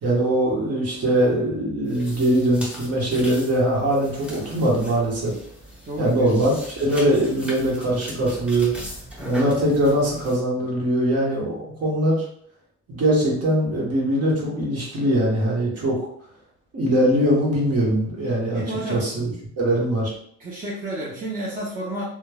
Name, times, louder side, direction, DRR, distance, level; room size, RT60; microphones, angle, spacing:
voice 1, 0.0-5.3 6.0-8.7 9.2-12.2 12.9-16.0 16.7-18.6 18.9-19.3 19.6-20.1, right 1 dB, 55° right, -4 dB, 1.3 m, -21 dB
sound 1, 1.8-10.4, equal, 5° right, 1.0 m, -39 dB
voice 2, 5.8-6.3 18.5-19.1 20.4-22.0, right 1 dB, 30° right, -6 dB, 0.8 m, -31 dB
3.0 x 2.2 x 2.3 m, 0.67 s
cardioid pair, 90°, 30 cm